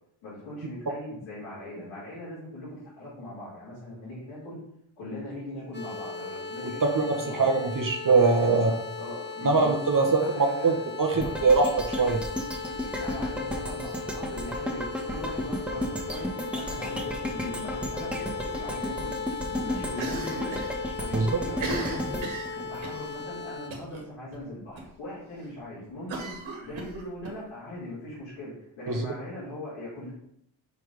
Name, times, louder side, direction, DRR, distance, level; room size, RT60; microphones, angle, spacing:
voice 1, 0.2-4.6 5.0-7.5 8.4-10.8 11.2-11.5 12.7-19.1 19.4-20.5 21.0-22.2 22.5-30.1, left 1 dB, 90° left, -11 dB, 2.6 m, -40 dB
sound 1, 5.7-23.7, left 4 dB, 20° left, 1.5 m, -38 dB
voice 2, 6.8-8.7 9.4-12.2 21.1-21.3 28.9-29.0, right 4 dB, 40° right, 2 dB, 1.2 m, -23 dB
sound 2, 11.2-23.4 23.8-23.9, left 1 dB, ahead, 1.6 m, -33 dB
Cough, 19.9-20.7 21.0-21.1 21.5-23.0 23.7-24.0 24.3-24.4 24.8-24.9 26.1-27.3, right 2 dB, 70° right, 1.8 m, -35 dB
5.4 x 4.5 x 4.9 m, 0.74 s
supercardioid pair, 40°, 48 cm